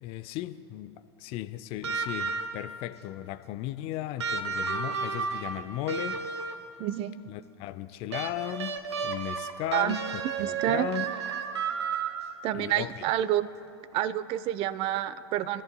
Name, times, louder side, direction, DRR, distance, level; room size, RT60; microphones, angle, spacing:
voice 1, 0.0-6.2 7.3-10.0 10.5-11.1 12.5-13.0, left 14 dB, 40° left, 12 dB, 0.5 m, -36 dB
sound 1, 1.8-2.8 4.2-6.8 8.1-12.6 13.9-14.0, right 5 dB, 80° right, 1.1 m, -33 dB
voice 2, 6.8-7.2 9.7-10.0 10.4-10.9 12.4-13.5 13.9-15.6, right 13 dB, 40° right, 15 dB, 0.6 m, -28 dB
25.0 x 14.0 x 2.2 m, 2.6 s
hypercardioid pair, 95°, 14 cm